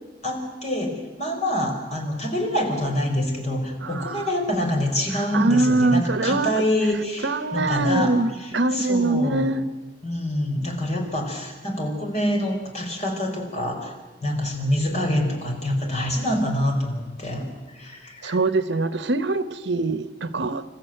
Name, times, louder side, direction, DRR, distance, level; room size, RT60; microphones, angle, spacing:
voice 1, 0.2-8.1 8.7-9.4 10.0-13.9 14.2-17.5 17.7-18.4, left 1 dB, 40° left, 4.6 m, -26 dB
voice 2, 3.8-4.3 5.1-6.5 7.2-9.6 18.2-20.6, right 2 dB, 75° right, 1.1 m, -23 dB
27.5 x 14.0 x 9.1 m
head